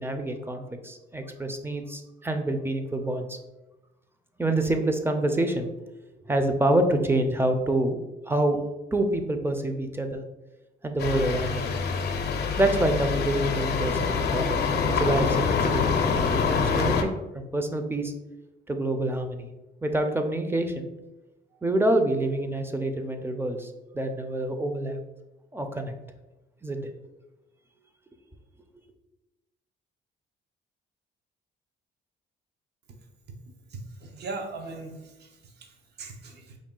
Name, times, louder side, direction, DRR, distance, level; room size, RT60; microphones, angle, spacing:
voice 1, 0.0-3.4 4.4-5.7 6.2-8.0 8.3-8.6 8.9-10.2 10.8-11.7 12.6-14.6 14.9-18.1 18.7-19.5 19.8-20.9 21.6-25.0 25.5-25.9 26.6-26.9, right 1 dB, 10° right, 6 dB, 0.5 m, -27 dB
sound 1, 11.0-17.0, left 5 dB, 55° left, 0.6 m, -25 dB
voice 2, 33.7-36.6, right 3 dB, 55° right, 3 dB, 0.7 m, -40 dB
4.9 x 2.3 x 3.7 m, 1.0 s
cardioid pair, 90°, 20 cm